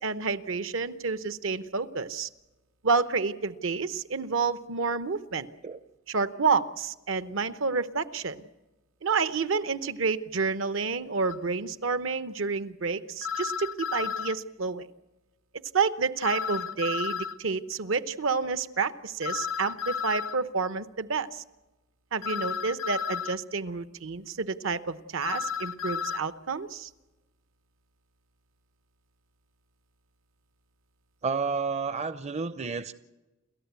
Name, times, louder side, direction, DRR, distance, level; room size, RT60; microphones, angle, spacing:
voice 1, 0.0-2.3 2.8-5.5 6.1-8.4 9.0-14.9 15.7-21.4 22.1-26.9, right 4 dB, 70° right, 12 dB, 1.0 m, -29 dB
sound 1, 11.3-11.4 13.2-14.4 16.2-17.4 19.2-20.4 22.2-23.4 25.2-26.2, left 7 dB, 75° left, 0.7 m, -32 dB
voice 2, 31.2-32.9, right 4 dB, 35° right, 12 dB, 0.6 m, -30 dB
29.0 x 13.5 x 8.3 m, 1.1 s
head